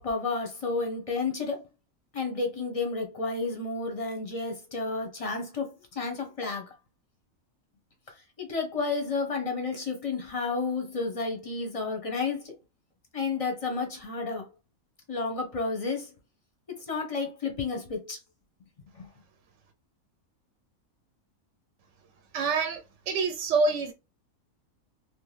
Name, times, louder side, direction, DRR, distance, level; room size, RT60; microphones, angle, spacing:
voice 1, 0.0-1.6 2.1-6.7 8.4-12.5 13.1-14.5 15.1-16.1 16.9-18.2 18.9-19.1, left 4 dB, 35° left, 0.6 m, -31 dB
voice 2, 22.3-22.8 23.1-23.9, right 4 dB, 65° right, 0.8 m, -26 dB
2.9 x 2.2 x 3.2 m
omnidirectional pair, 1.5 m